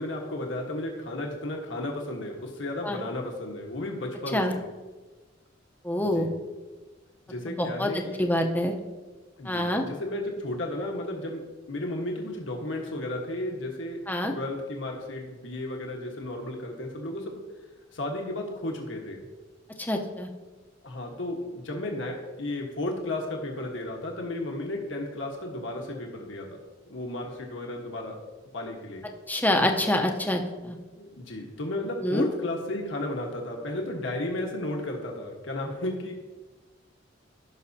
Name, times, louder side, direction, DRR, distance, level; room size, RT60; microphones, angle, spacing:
voice 1, 0.0-4.6 6.0-6.3 7.3-8.3 9.4-11.4 11.7-17.4 17.9-19.3 20.8-26.6 26.9-28.2 28.5-29.0 30.9-36.2, left 1 dB, 80° left, 0 dB, 1.4 m, -33 dB
voice 2, 5.8-6.3 7.5-8.7 9.4-9.8 14.1-14.3 19.8-20.3 29.3-30.8 32.0-32.2, left 1 dB, 10° left, 3 dB, 0.8 m, -26 dB
15.0 x 6.2 x 2.8 m, 1.3 s
head